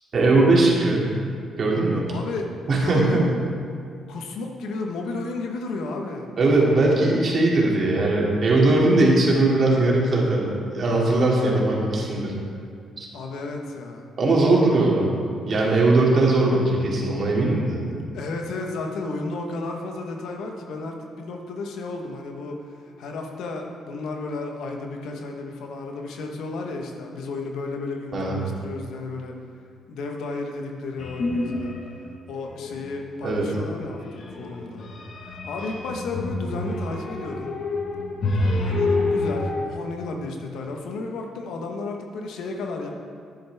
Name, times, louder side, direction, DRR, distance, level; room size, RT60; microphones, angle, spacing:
voice 1, 0.1-1.1 1.6-2.0 2.7-3.3 6.4-12.3 13.0-13.1 14.2-17.8 28.1-28.4 33.2-33.5, right 2 dB, 50° right, -3 dB, 2.5 m, -20 dB
voice 2, 2.1-3.3 4.1-6.3 13.1-14.1 18.1-29.4 29.9-31.7 32.0-34.8 35.2-37.5 38.3-42.9, left 3 dB, 80° left, 2 dB, 1.2 m, -33 dB
sound 1, 31.0-32.0 32.4-32.9 33.7-39.7, left 2 dB, 60° left, 1.4 m, -28 dB
10.5 x 10.0 x 3.5 m, 2.3 s
cardioid pair, 90°, 0 cm